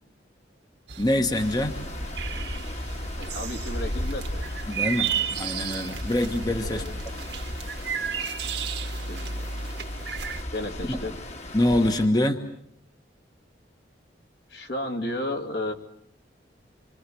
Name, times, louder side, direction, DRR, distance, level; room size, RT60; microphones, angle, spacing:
sound 1, 0.9-10.4, right 6 dB, 75° right, 2.0 m, -33 dB
voice 1, 1.0-1.8 4.7-6.8 10.9-11.0 11.5-12.4, left 1 dB, 20° left, 6 dB, 1.3 m, -24 dB
Stream, 1.3-12.1, left 1 dB, 40° left, 1.9 m, -36 dB
voice 2, 3.2-4.5 6.6-6.9 9.1-9.2 10.5-11.2 14.5-15.7, left 1 dB, 65° left, 5 dB, 2.9 m, -33 dB
27.0 x 26.0 x 7.7 m, 0.69 s
head